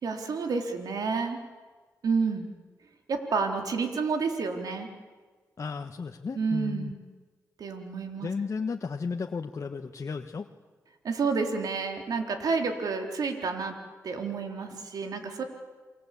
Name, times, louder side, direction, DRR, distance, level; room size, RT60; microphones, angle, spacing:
voice 1, 0.0-1.4 2.0-2.5 3.1-4.9 6.3-6.9 7.6-8.3 11.0-13.7 14.0-15.4, right 4 dB, 75° right, 4 dB, 3.9 m, -29 dB
voice 2, 5.6-6.9 8.2-10.5, left 5 dB, 50° left, 3 dB, 1.4 m, -34 dB
29.0 x 24.0 x 8.6 m, 1.4 s
cardioid pair, 65°, 7 cm